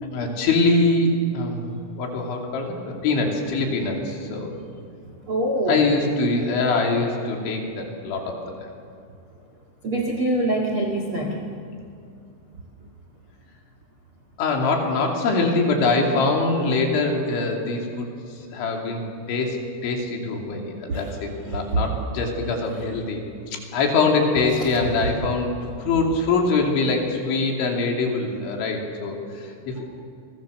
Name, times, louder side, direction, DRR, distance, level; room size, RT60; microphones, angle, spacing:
voice 1, 0.1-4.5 5.7-8.7 14.4-19.0 19.3-19.6 19.8-23.2 23.5-25.5 25.8-29.8, left 3 dB, 65° left, 1 dB, 5.0 m, -23 dB
voice 2, 5.3-5.9 9.8-11.5 20.9-21.8 24.6-25.1, right 1 dB, 50° right, 1 dB, 1.6 m, -25 dB
29.5 x 22.5 x 6.8 m, 2.3 s
omnidirectional pair, 5.9 m